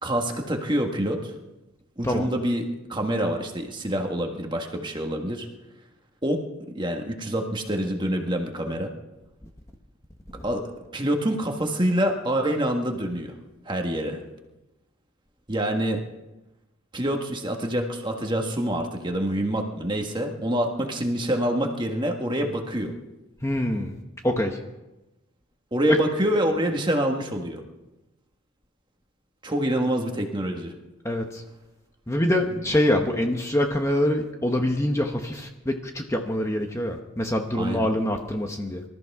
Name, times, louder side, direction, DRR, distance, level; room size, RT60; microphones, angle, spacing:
voice 1, 0.0-1.3 2.0-5.5 6.2-6.4 6.7-8.9 10.4-10.6 10.9-13.3 13.6-14.2 15.5-16.0 16.9-22.9 25.7-27.6 29.4-30.7 37.5-37.9, right 1 dB, 20° right, 3 dB, 1.6 m, -26 dB
voice 2, 2.0-2.3 10.3-10.5 23.4-23.9 24.2-24.6 25.9-26.0 31.0-31.4 32.1-38.8, left 1 dB, 15° left, 3 dB, 1.0 m, -25 dB
25.5 x 14.0 x 3.6 m, 1.0 s
head